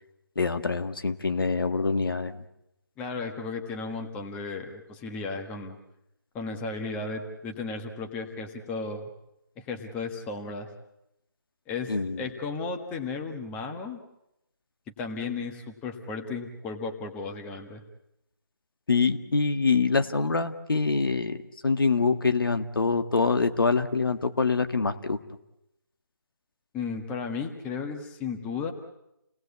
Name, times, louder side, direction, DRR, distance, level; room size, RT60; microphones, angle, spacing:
voice 1, 0.4-2.4 11.9-12.3 18.9-25.2, left 4 dB, 70° left, 9 dB, 1.8 m, -25 dB
voice 2, 3.0-5.8 6.3-9.1 9.6-10.7 11.7-14.0 15.0-17.8 26.7-28.7, left 4 dB, 10° left, 4 dB, 1.5 m, -34 dB
29.5 x 19.0 x 8.3 m, 0.86 s
figure-of-eight pair, 160°, 12 cm